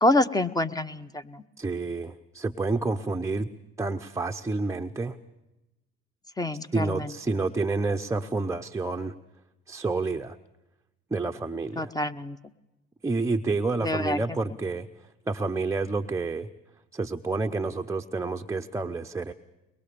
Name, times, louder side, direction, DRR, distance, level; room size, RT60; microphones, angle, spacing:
voice 1, 0.0-1.4 6.4-7.0 11.8-12.4 13.8-14.2, left 1 dB, 10° left, 13 dB, 1.0 m, -26 dB
voice 2, 1.6-3.5 3.8-5.2 6.7-9.1 9.7-10.4 11.1-11.9 13.0-16.5 16.9-19.3, right 3 dB, 10° right, 5 dB, 0.8 m, -29 dB
23.0 x 21.5 x 6.9 m, 0.99 s
supercardioid pair, 100°, 30 cm